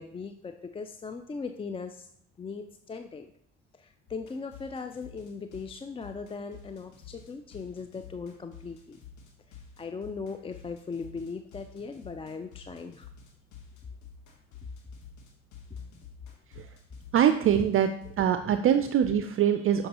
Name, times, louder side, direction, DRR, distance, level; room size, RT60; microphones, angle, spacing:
voice 1, 0.0-2.1 2.4-3.3 3.7-9.0 9.5-13.1, left 4 dB, 20° left, 8 dB, 0.4 m, -39 dB
sound 1, 4.1-18.2, left 7 dB, 70° left, 1.3 m, -50 dB
voice 2, 17.1-17.9 18.2-19.9, right 9 dB, 45° right, 8 dB, 0.5 m, -23 dB
6.5 x 5.5 x 2.9 m, 0.68 s
supercardioid pair, 70°, 30 cm